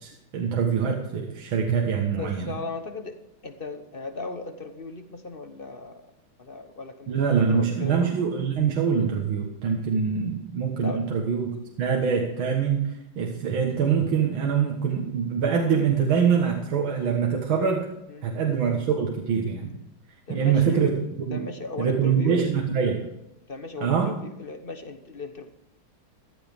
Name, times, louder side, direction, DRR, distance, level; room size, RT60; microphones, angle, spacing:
voice 1, 0.0-2.5 7.1-11.5 11.8-17.8 18.2-19.7 20.3-20.9 21.3-21.5 21.8-23.0 23.8-24.1, right 6 dB, 75° right, 0 dB, 2.3 m, -24 dB
voice 2, 2.1-3.2 3.4-6.0 6.4-7.9 10.8-11.0 18.1-18.3 20.3-20.9 21.3-22.5 23.5-25.5, left 3 dB, 35° left, 7 dB, 0.9 m, -37 dB
14.5 x 13.0 x 3.5 m, 0.88 s
omnidirectional pair, 2.2 m